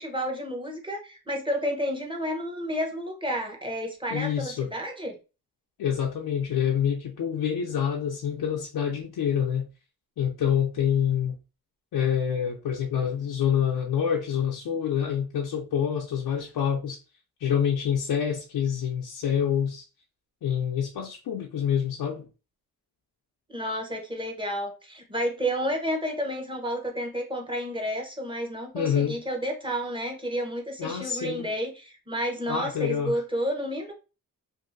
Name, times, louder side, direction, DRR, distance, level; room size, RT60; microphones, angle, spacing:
voice 1, 0.0-5.2 23.5-33.9, equal, 15° right, 0.8 m, -31 dB
voice 2, 4.1-4.7 5.8-9.7 10.2-11.4 11.9-17.0 17.4-19.9 20.4-22.3 28.7-29.2 30.8-31.5 32.5-33.2, left 8 dB, 80° left, 0.5 m, -27 dB
2.6 x 2.5 x 2.5 m
wide cardioid pair, 80°, 37 cm